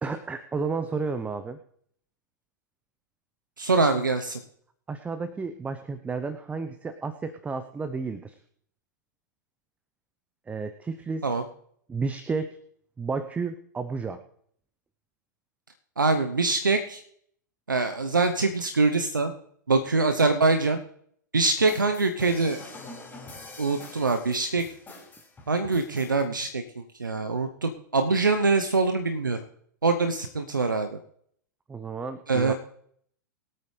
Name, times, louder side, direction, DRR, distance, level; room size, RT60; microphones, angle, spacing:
voice 1, 0.0-1.6 4.9-8.4 10.5-11.3 11.9-12.6 13.0-14.2 31.7-32.5, right 4 dB, 15° right, 10 dB, 0.8 m, -32 dB
voice 2, 3.6-4.4 11.2-11.4 16.0-17.0 17.7-19.3 19.7-20.8 21.3-22.6 23.6-24.6 25.5-29.4 29.8-31.0 32.3-32.5, right 3 dB, 90° right, 7 dB, 0.9 m, -24 dB
sound 1, 21.5-26.2, left 2 dB, 15° left, 4.7 m, -45 dB
22.5 x 8.7 x 3.3 m, 0.64 s
figure-of-eight pair, 100°, 10 cm